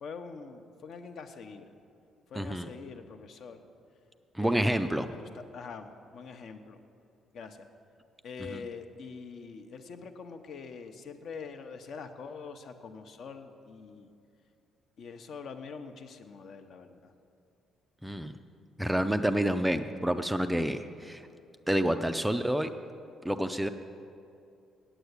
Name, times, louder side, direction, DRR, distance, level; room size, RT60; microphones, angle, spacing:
voice 1, 0.0-1.6 2.3-3.6 4.4-6.8 7.3-7.7 8.2-14.1 15.0-17.1, left 5 dB, 55° left, 7 dB, 0.7 m, -44 dB
voice 2, 2.3-2.7 4.3-5.1 8.4-8.6 18.0-18.3 18.8-21.2 21.7-22.7 23.2-23.7, right 1 dB, 5° right, 9 dB, 0.3 m, -28 dB
8.9 x 8.2 x 8.1 m, 2.6 s
cardioid pair, 150°, 0 cm